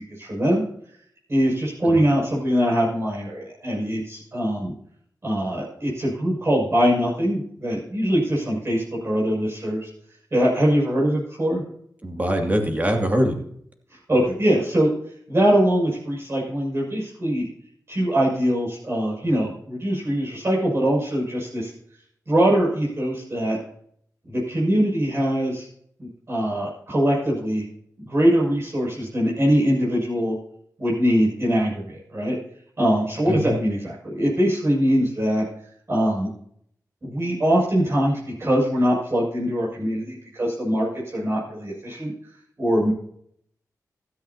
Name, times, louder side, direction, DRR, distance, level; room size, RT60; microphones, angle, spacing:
voice 1, 0.2-0.6 1.3-4.7 5.2-9.9 10.3-11.6 14.1-14.9 15.3-17.5 17.9-21.7 22.3-23.6 24.3-25.7 26.0-27.6 28.0-30.4 30.8-32.4 32.8-35.5 35.9-36.3 37.0-42.1 42.6-42.9, equal, 40° right, -5 dB, 6.9 m, -22 dB
voice 2, 12.0-13.4 33.3-33.5, equal, 25° right, 3 dB, 2.6 m, -23 dB
16.0 x 13.5 x 2.9 m, 0.66 s
wide cardioid pair, 80°, 7 cm